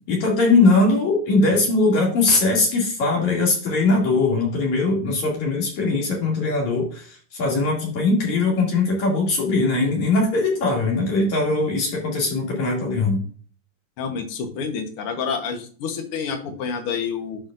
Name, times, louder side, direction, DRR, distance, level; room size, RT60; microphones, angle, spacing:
voice 1, 0.1-13.2, left 3 dB, 55° left, -2 dB, 3.5 m, -20 dB
voice 2, 14.0-17.4, left 6 dB, 75° left, 6 dB, 1.2 m, -28 dB
11.5 x 5.0 x 2.5 m, 0.44 s
omnidirectional pair, 4.0 m